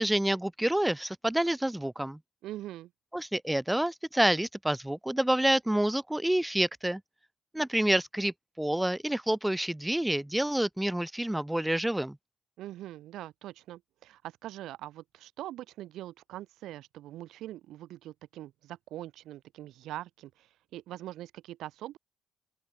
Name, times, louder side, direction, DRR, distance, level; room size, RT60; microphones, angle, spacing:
voice 1, 0.0-2.2 3.1-7.0 7.5-12.2, right 1 dB, 5° right, 1.0 m, -28 dB
voice 2, 2.4-2.9 12.6-20.5 20.7-22.0, right 14 dB, 85° right, 1.7 m, -43 dB
open air
cardioid pair, 90°, 0 cm